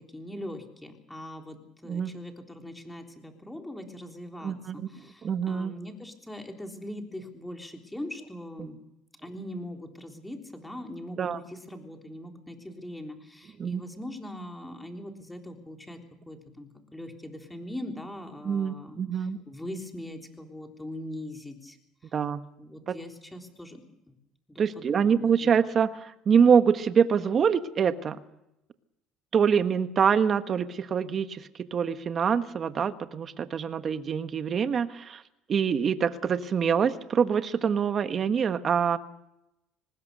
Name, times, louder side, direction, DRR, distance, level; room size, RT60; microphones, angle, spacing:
voice 1, 0.0-8.8 9.2-21.8 22.0-22.1 22.6-23.8 24.5-25.5, left 1 dB, 5° left, 3 dB, 3.5 m, -41 dB
voice 2, 4.4-4.8 5.2-5.7 8.6-8.7 11.2-11.4 13.6-13.8 18.4-19.4 22.1-22.4 22.9-23.0 24.6-28.2 29.3-35.2 35.5-39.0, right 7 dB, 40° right, 10 dB, 1.4 m, -25 dB
23.5 x 20.0 x 6.8 m, 0.87 s
cardioid pair, 110°, 0 cm